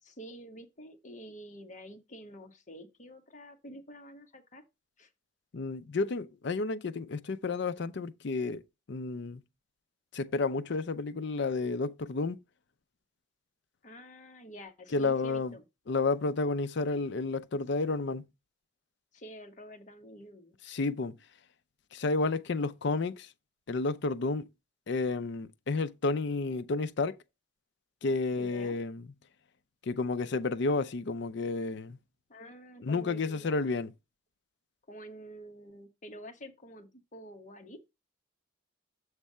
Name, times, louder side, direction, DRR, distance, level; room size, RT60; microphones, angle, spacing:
voice 1, 0.0-4.6 5.0-5.1 13.8-15.6 19.1-20.6 28.4-28.8 32.3-33.5 34.9-38.0, equal, 40° left, 1.2 m, -48 dB
voice 2, 5.5-8.6 8.9-9.4 10.1-12.4 14.9-15.5 15.9-18.3 20.7-21.1 21.9-23.3 23.7-24.5 24.9-27.2 28.0-29.1 29.8-32.0 32.8-33.9, left 3 dB, 60° left, 0.5 m, -31 dB
7.3 x 3.4 x 5.5 m
head